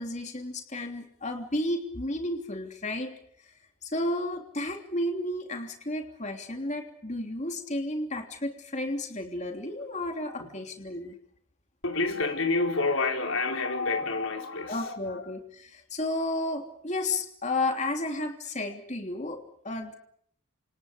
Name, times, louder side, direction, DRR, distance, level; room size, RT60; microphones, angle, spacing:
voice 1, 0.0-3.1 3.8-11.1 14.7-19.9, left 1 dB, 35° left, 3.1 m, -32 dB
voice 2, 11.8-15.3, left 3 dB, 70° left, 4.8 m, -29 dB
28.5 x 27.5 x 5.2 m
head